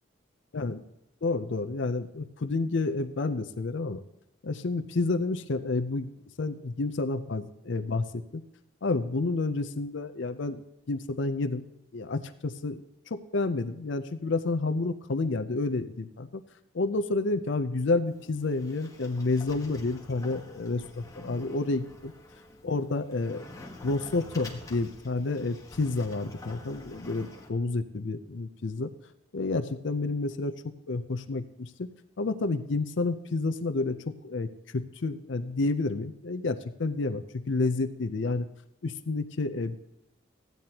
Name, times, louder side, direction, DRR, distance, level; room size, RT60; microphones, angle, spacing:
voice 1, 1.2-4.0 4.4-6.1 6.4-8.4 8.8-11.6 11.9-12.8 13.1-16.4 16.7-22.1 22.6-23.4 23.8-28.9 29.3-30.6 30.9-31.9 32.2-38.5 38.8-39.8, left 3 dB, 65° left, 8 dB, 0.5 m, -30 dB
Sliding door, 18.1-27.5, left 1 dB, 15° left, 1.1 m, -47 dB
15.0 x 9.3 x 2.9 m, 0.88 s
head